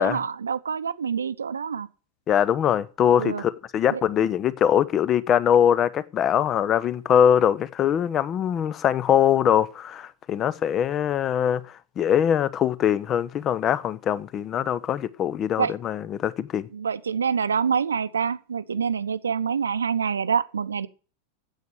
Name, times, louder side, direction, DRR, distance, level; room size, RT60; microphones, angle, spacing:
voice 1, 0.0-1.9 3.2-3.4 3.9-4.0 15.6-15.7 16.7-20.9, right 6 dB, 70° right, 0.8 m, -26 dB
voice 2, 2.3-11.6 12.0-16.7, left 9 dB, 30° left, 0.9 m, -22 dB
9.3 x 8.3 x 9.6 m
figure-of-eight pair, 90°, 0 cm